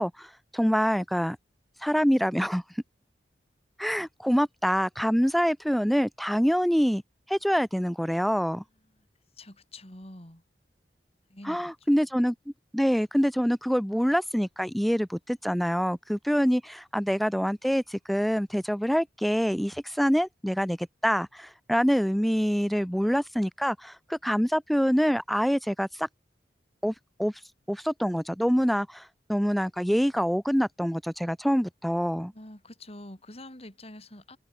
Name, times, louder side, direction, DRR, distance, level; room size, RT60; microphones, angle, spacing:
voice 1, 0.0-1.4 1.8-2.6 3.8-7.0 7.3-8.6 11.5-12.3 12.7-26.1 26.8-26.9 27.2-27.3 27.7-32.3, equal, ahead, 0.3 m, -25 dB
voice 2, 8.7-9.1 9.3-10.4 11.3-11.9 32.3-34.4, left 1 dB, 35° left, 5.5 m, -46 dB
head